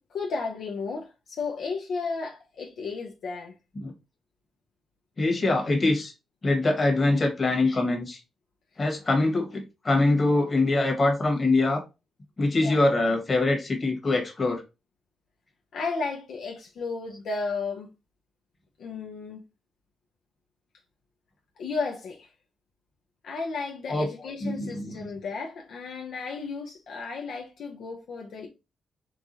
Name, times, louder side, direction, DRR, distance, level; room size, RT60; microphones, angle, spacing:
voice 1, 0.1-3.5 12.6-12.8 15.7-17.9 18.8-19.4 21.6-22.3 23.2-28.5, left 4 dB, 75° left, 0.6 m, -33 dB
voice 2, 5.2-6.1 6.4-8.2 8.8-11.8 12.4-14.6 23.9-24.0 24.4-24.9, left 2 dB, 35° left, 1.5 m, -24 dB
4.6 x 2.3 x 2.6 m
cardioid pair, 75°, 0 cm